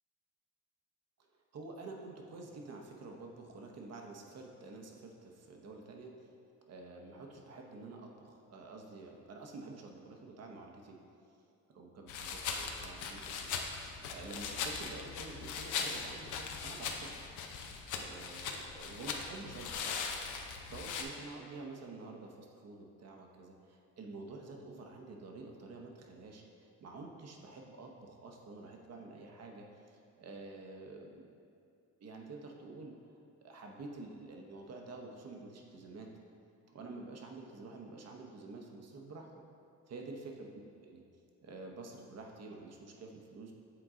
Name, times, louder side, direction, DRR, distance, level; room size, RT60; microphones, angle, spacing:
voice 1, 1.5-6.1 6.7-11.0 11.7-13.6 13.9-17.3 17.9-20.0 20.3-26.4 26.8-31.3 32.0-32.9 33.4-36.1 36.7-39.3 39.9-40.5 40.8-41.0 41.4-43.5, right 3 dB, 55° right, 1 dB, 0.9 m, -49 dB
sound 1, 12.1-21.0, left 5 dB, 80° left, 0.6 m, -40 dB
7.7 x 3.8 x 3.7 m, 2.5 s
cardioid pair, 90°, 30 cm